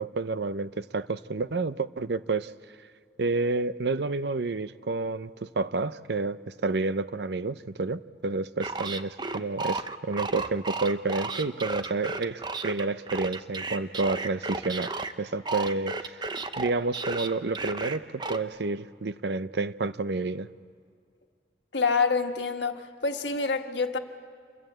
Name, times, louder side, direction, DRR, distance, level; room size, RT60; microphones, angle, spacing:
voice 1, 0.0-2.5 3.2-16.3 16.6-20.5, right 3 dB, 70° right, 14 dB, 0.6 m, -30 dB
sound 1, 8.6-15.1 15.5-18.4, right 3 dB, 25° right, 0.7 m, -33 dB
voice 2, 21.7-24.0, left 4 dB, 85° left, 5 dB, 1.4 m, -27 dB
27.5 x 22.0 x 7.9 m, 2.1 s
head